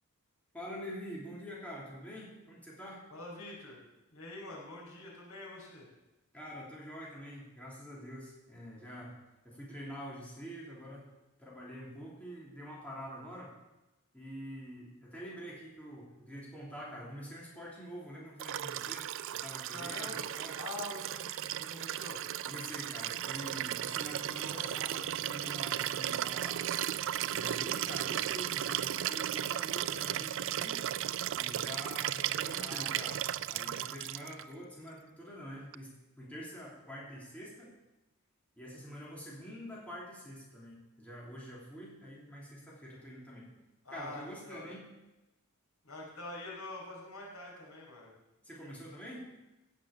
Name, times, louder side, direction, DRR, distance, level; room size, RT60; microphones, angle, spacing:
voice 1, 0.5-3.0 6.3-9.2 9.4-11.1 11.4-13.5 14.1-20.6 22.4-26.6 27.3-30.8 31.4-33.2 33.5-37.7 38.6-43.5 43.9-44.8 48.4-49.3, equal, 5° left, -5 dB, 3.1 m, -46 dB
voice 2, 3.1-3.8 4.1-5.9 19.7-20.3 20.6-22.2 24.4-24.8 32.6-33.0 43.8-44.8 45.8-48.1, left 2 dB, 80° left, -4 dB, 4.9 m, -45 dB
Liquid, 18.4-34.4 35.7-35.8, right 11 dB, 60° right, 0.4 m, -35 dB
16.0 x 6.3 x 7.1 m, 1.0 s
head